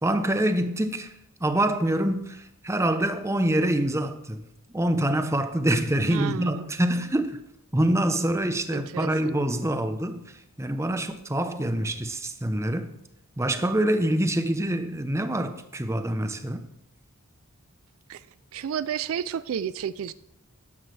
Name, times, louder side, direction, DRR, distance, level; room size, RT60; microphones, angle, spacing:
voice 1, 0.0-1.1 1.4-4.4 4.7-7.4 7.7-12.9 13.4-16.7, right 1 dB, 15° right, 0.7 m, -25 dB
voice 2, 6.0-6.7 8.7-9.4 18.1-18.3 18.5-20.1, right 8 dB, 70° right, 0.3 m, -32 dB
13.0 x 10.5 x 3.3 m
head